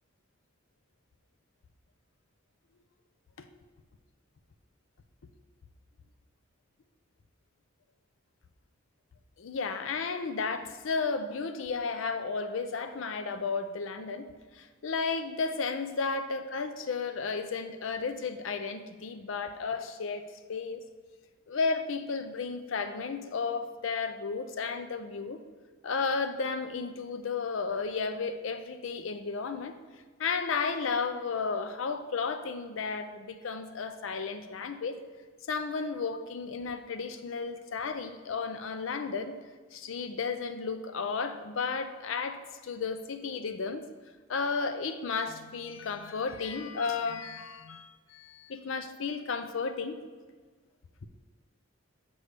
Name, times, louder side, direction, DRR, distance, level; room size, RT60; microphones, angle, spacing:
voice 1, 9.4-14.3 14.5-20.8 21.5-25.4 25.8-29.7 30.2-35.0 35.5-39.4 39.7-43.8 44.3-50.0, left 4 dB, 75° left, 9 dB, 0.5 m, -33 dB
8.0 x 5.4 x 3.3 m, 1.4 s
head